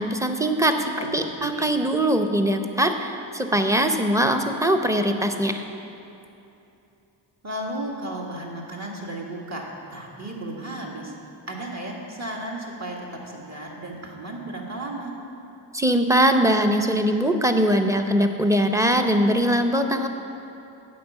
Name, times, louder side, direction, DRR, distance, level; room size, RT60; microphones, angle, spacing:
voice 1, 0.0-5.6 15.7-20.1, right 1 dB, 5° right, 5 dB, 0.7 m, -21 dB
voice 2, 0.8-1.6 7.4-11.1 11.5-15.1, right 1 dB, 40° right, -2 dB, 1.7 m, -34 dB
9.3 x 5.5 x 7.0 m, 2.8 s
cardioid pair, 65°, 43 cm